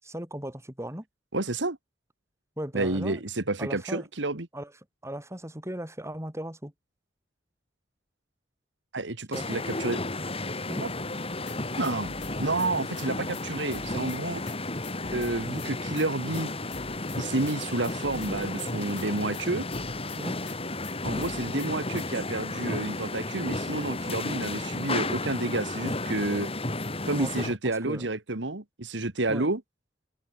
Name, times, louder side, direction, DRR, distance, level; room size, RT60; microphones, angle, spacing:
voice 1, 0.0-1.1 2.6-3.2 3.6-4.1 4.5-4.7 5.0-6.7 9.3-9.6 10.7-10.8 20.1-20.4 27.1-27.4 27.9-28.1 29.3-29.5, right 1 dB, 15° right, 5.4 m, -37 dB
voice 2, 1.3-1.8 2.7-4.5 8.9-10.0 10.8-10.9 11.8-12.1 12.4-14.4 15.1-16.5 17.2-19.7 21.0-26.5 27.1-29.6, right 2 dB, 80° right, 2.0 m, -30 dB
sound 1, 9.3-27.6, left 2 dB, 35° left, 4.5 m, -33 dB
sound 2, 11.4-13.1 13.3-13.4 13.7-16.1 16.3-16.4 16.7-19.4 19.7-20.6 20.8-22.1, left 4 dB, 70° left, 3.1 m, -46 dB
open air
head